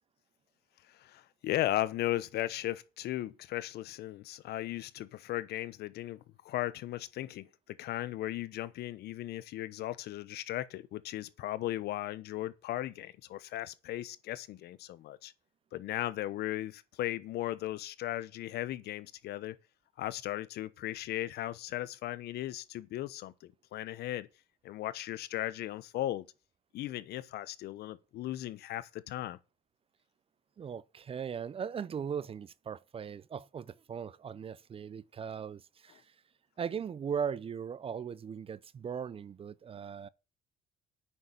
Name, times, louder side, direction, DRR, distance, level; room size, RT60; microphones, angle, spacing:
voice 1, 0.8-15.3 15.7-19.6 20.0-24.3 24.6-26.3 26.7-29.4, left 14 dB, 75° left, 1.0 m, -37 dB
voice 2, 30.6-36.0 36.6-40.1, right 7 dB, 35° right, 0.6 m, -38 dB
9.3 x 6.4 x 8.2 m
cardioid pair, 110°, 17 cm